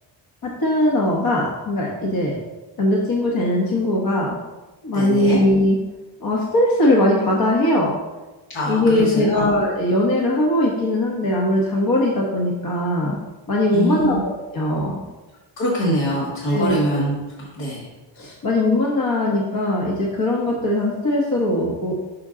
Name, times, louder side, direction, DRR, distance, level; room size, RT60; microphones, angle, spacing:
voice 1, 0.4-2.4 2.8-4.4 4.8-5.8 6.2-7.9 8.7-13.2 13.5-15.0 16.5-16.8 18.2-21.9, left 1 dB, 50° left, -2 dB, 1.2 m, -20 dB
voice 2, 4.9-5.4 8.5-9.4 13.7-14.1 15.6-17.1 17.6-17.9, equal, 75° left, -6 dB, 1.7 m, -23 dB
6.3 x 5.2 x 3.7 m, 1.2 s
cardioid pair, 105°, 47 cm